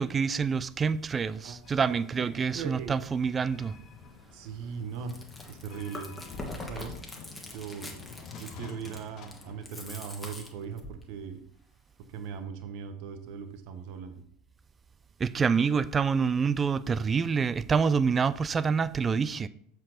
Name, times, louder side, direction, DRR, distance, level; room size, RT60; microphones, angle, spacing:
voice 1, 0.0-3.7 15.2-19.5, right 6 dB, 25° right, 0.4 m, -27 dB
sound 1, 1.6-9.6, left 5 dB, 45° left, 1.1 m, -49 dB
voice 2, 2.2-2.9 4.3-5.2 5.5-6.1 6.6-6.9 7.5-8.0 8.3-11.4 12.1-14.2, right 6 dB, 55° right, 1.0 m, -39 dB
Chewing mastication, 4.9-11.0, left 2 dB, 10° left, 1.6 m, -43 dB
7.3 x 4.6 x 4.4 m
figure-of-eight pair, 75°, 0 cm